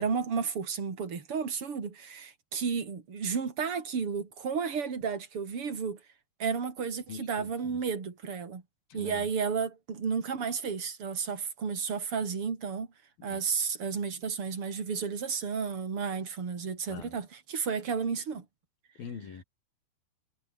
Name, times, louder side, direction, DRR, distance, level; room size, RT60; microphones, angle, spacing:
voice 1, 0.0-6.0 6.4-8.6 8.9-12.9 13.2-18.5, right 6 dB, 35° right, 4.2 m, -32 dB
voice 2, 7.1-7.8 8.9-9.3 13.3-13.4 16.9-17.1 19.0-19.4, left 6 dB, 70° left, 5.7 m, -43 dB
omnidirectional pair, 4.4 m